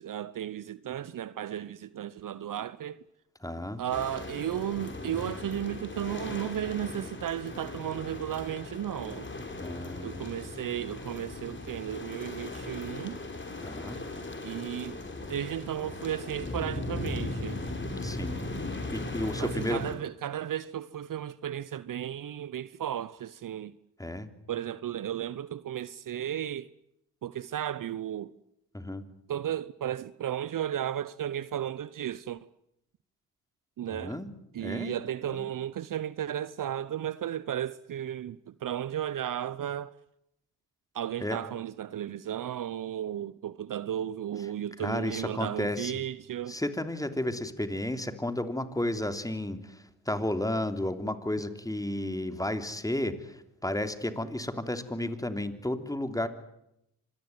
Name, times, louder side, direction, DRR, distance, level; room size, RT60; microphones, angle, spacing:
voice 1, 0.0-3.0 3.8-9.3 10.0-13.2 14.4-15.0 15.3-17.6 19.4-23.7 24.5-26.7 27.2-28.3 29.3-32.5 33.8-34.2 34.5-39.9 40.9-46.6, right 10 dB, 55° right, 0.9 m, -34 dB
voice 2, 3.4-3.8 9.6-10.3 13.6-14.0 18.0-18.4 18.9-19.8 24.0-24.3 28.7-29.0 33.9-34.3 34.6-35.0 35.3-35.5 41.2-41.4 44.8-45.9 46.5-56.3, left 1 dB, 10° left, 3.3 m, -32 dB
sound 1, 3.9-20.0, left 2 dB, 30° left, 5.6 m, -38 dB
25.5 x 20.0 x 9.4 m
hypercardioid pair, 45°, 39 cm